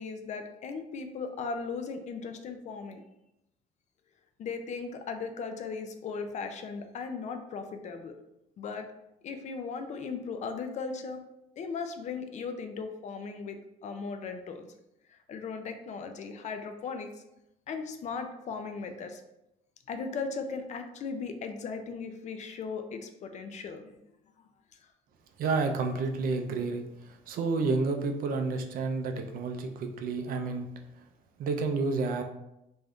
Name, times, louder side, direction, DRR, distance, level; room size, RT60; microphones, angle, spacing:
voice 1, 0.0-3.0 4.4-8.2 8.6-8.9 9.2-11.2 11.6-14.7 15.1-17.1 17.7-19.2 19.9-24.0, left 5 dB, 45° left, 7 dB, 0.4 m, -37 dB
voice 2, 25.4-30.7 31.4-32.2, right 4 dB, 60° right, 5 dB, 0.4 m, -30 dB
2.6 x 2.3 x 3.4 m, 0.86 s
cardioid pair, 110°, 17 cm